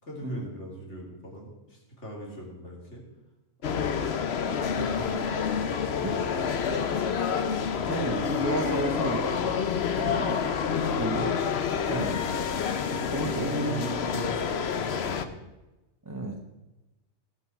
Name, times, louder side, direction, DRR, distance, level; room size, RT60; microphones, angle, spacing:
voice 1, 0.0-3.0 3.6-5.3 5.5-6.9 7.7-9.2 9.9-10.3 11.7-12.1 12.3-15.3, equal, 85° left, -1 dB, 3.3 m, -41 dB
sound 1, 3.6-15.3, left 6 dB, 65° left, 1.1 m, -28 dB
voice 2, 7.9-9.5 10.0-10.4 10.7-11.4 11.9-12.2 13.1-13.9 16.0-16.4, right 2 dB, 15° right, 1 dB, 1.1 m, -32 dB
18.0 x 6.0 x 5.8 m, 1.0 s
omnidirectional pair, 1.2 m